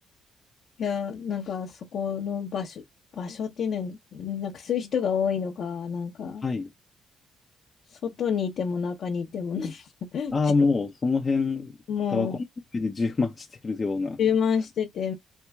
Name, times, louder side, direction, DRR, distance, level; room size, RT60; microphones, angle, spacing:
voice 1, 0.8-2.8 3.2-6.4 8.0-9.9 10.1-10.3 11.9-12.4 14.2-15.1, left 7 dB, 65° left, 0.9 m, -28 dB
voice 2, 10.3-11.8 12.1-12.4 12.7-14.2, left 4 dB, 30° left, 0.6 m, -25 dB
4.5 x 2.5 x 2.3 m
cardioid pair, 90°, 0 cm